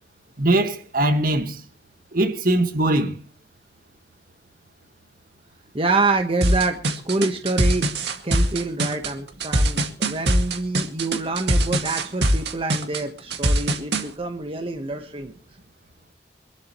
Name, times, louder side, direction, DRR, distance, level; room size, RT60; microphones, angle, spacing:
voice 1, 0.4-1.6 2.1-3.2, right 1 dB, 55° right, 1.7 m, -21 dB
voice 2, 5.7-7.9 8.2-15.3, right 3 dB, 30° right, 1.2 m, -26 dB
sound 1, 6.4-14.0, right 1 dB, 70° right, 2.1 m, -22 dB
25.5 x 12.5 x 3.1 m
head